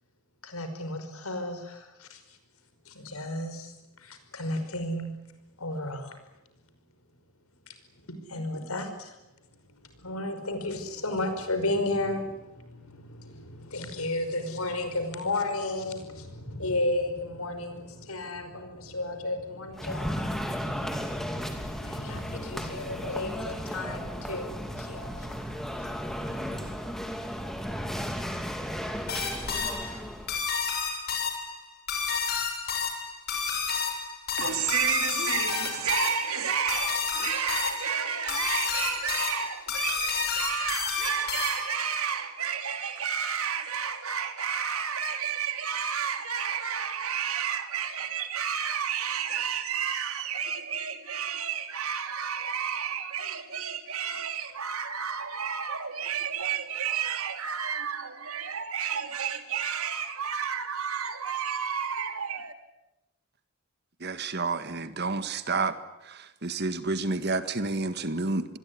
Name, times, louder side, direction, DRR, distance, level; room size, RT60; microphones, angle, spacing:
voice 1, 0.4-2.2 2.9-3.7 4.0-5.1 5.6-6.2 8.3-9.1 10.0-26.9, left 2 dB, 90° left, 5.3 m, -33 dB
sound 1, 19.7-30.4, equal, ahead, 2.8 m, -35 dB
sound 2, 29.1-41.8, left 5 dB, 45° left, 6.6 m, -31 dB
voice 2, 29.4-29.9 34.4-62.5, right 7 dB, 85° right, 2.9 m, -31 dB
voice 3, 64.0-65.8 66.4-68.6, right 3 dB, 50° right, 1.8 m, -29 dB
27.0 x 21.0 x 9.7 m
head